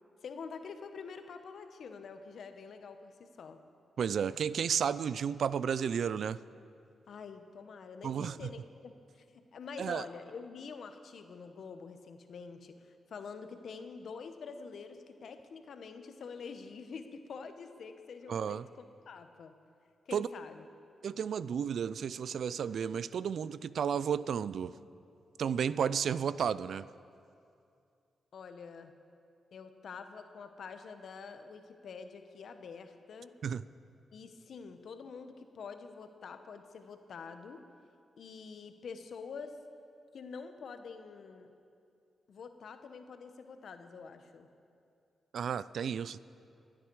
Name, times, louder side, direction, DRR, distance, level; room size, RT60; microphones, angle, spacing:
voice 1, 0.2-3.6 7.1-9.2 9.5-19.5 20.1-20.6 28.3-28.9 29.5-33.3 34.1-37.6 38.2-39.6 40.1-41.5 42.3-44.5, left 5 dB, 70° left, 8 dB, 1.1 m, -46 dB
voice 2, 4.0-6.4 8.0-8.5 9.8-10.0 18.3-18.7 20.1-20.3 21.0-24.8 25.4-26.9 33.4-33.6 45.3-46.2, right 7 dB, 70° right, 17 dB, 0.4 m, -32 dB
25.5 x 8.9 x 4.7 m, 2.5 s
supercardioid pair, 50°, 0 cm